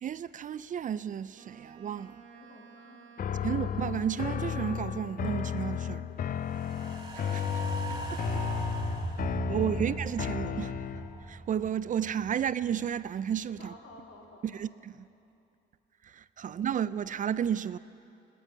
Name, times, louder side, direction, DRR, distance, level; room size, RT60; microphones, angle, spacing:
voice 1, 0.0-2.2 3.4-6.1 7.1-7.4 7.9-8.0 9.5-10.7 11.3-13.7 14.4-14.9 16.0-17.8, right 9 dB, 40° right, 0.4 m, -32 dB
Wind instrument woodwind instrument, 1.3-4.9, right 6 dB, 90° right, 1.1 m, -54 dB
voice 2, 2.3-3.0 8.0-9.1 13.6-14.7, left 2 dB, 80° left, 2.5 m, -54 dB
sound 1, 3.2-11.3, left 9 dB, 45° left, 0.4 m, -34 dB
sound 2, 6.4-12.8 13.2-13.3, right 2 dB, 20° right, 1.8 m, -37 dB
14.5 x 9.1 x 8.4 m
cardioid pair, 90°, 20 cm